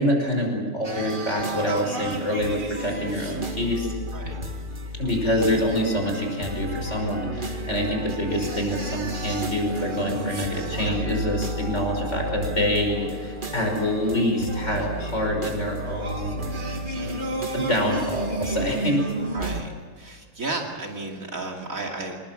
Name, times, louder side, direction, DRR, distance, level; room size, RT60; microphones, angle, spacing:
voice 1, 0.0-3.9 5.0-16.5 17.5-19.0, equal, 55° left, 1 dB, 5.8 m, -26 dB
sound 1, 0.8-19.6, right 1 dB, 35° right, 2.1 m, -32 dB
voice 2, 16.9-17.3 19.3-22.2, right 2 dB, 75° right, 1 dB, 3.1 m, -33 dB
27.5 x 20.0 x 7.6 m, 1.6 s
omnidirectional pair, 1.4 m